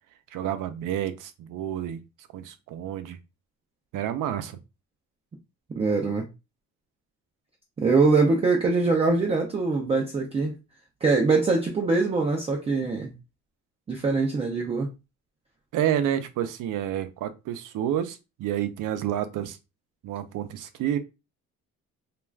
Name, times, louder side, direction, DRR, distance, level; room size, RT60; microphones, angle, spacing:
voice 1, 0.3-2.0 2.3-3.2 3.9-4.6 15.7-19.6 20.0-21.0, right 10 dB, 75° right, 0.5 m, -29 dB
voice 2, 5.8-6.3 7.8-10.5 11.0-13.1 13.9-14.9, right 3 dB, 20° right, 0.4 m, -23 dB
2.3 x 2.3 x 3.2 m
cardioid pair, 150°, 32 cm